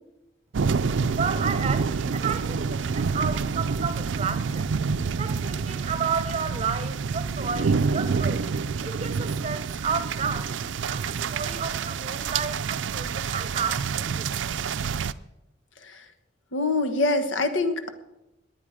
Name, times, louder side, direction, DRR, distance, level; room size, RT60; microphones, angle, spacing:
sound 1, 0.5-15.1, right 5 dB, 70° right, 0.4 m, -27 dB
voice 1, 1.2-4.7 5.2-8.5 8.8-14.6, right 6 dB, 35° right, 0.9 m, -32 dB
voice 2, 16.5-17.9, left 2 dB, 90° left, 1.3 m, -25 dB
19.0 x 9.3 x 5.0 m
head